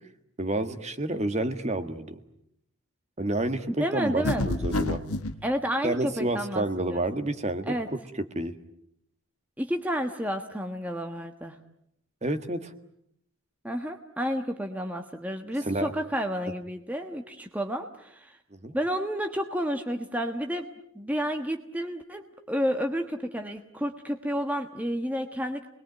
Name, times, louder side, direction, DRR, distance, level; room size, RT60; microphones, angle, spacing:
voice 1, 0.4-2.2 3.2-5.0 5.8-7.8 8.3-8.5 12.2-12.7 15.6-15.9 18.5-18.7, right 1 dB, 30° right, 8 dB, 1.6 m, -29 dB
voice 2, 3.7-4.5 5.4-7.0 7.7-7.9 9.6-11.6 13.6-18.4 18.7-20.7 20.9-25.7, equal, 5° right, 5 dB, 1.3 m, -30 dB
sound 1, 4.2-5.4, left 1 dB, 85° left, 1.5 m, -28 dB
29.5 x 21.0 x 9.3 m, 0.77 s
head